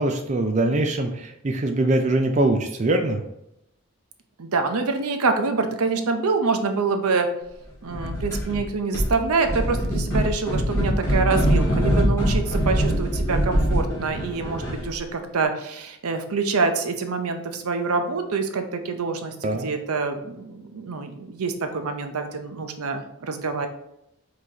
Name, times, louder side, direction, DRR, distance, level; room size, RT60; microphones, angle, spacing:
voice 1, 0.0-3.2 19.4-19.7, right 2 dB, 30° right, 4 dB, 0.4 m, -22 dB
voice 2, 4.4-7.3 7.8-23.7, right 4 dB, 85° right, 6 dB, 0.6 m, -26 dB
sound 1, 7.9-8.6 8.9-15.0, equal, 15° left, 1.8 m, -23 dB
4.9 x 3.9 x 2.8 m, 0.83 s
head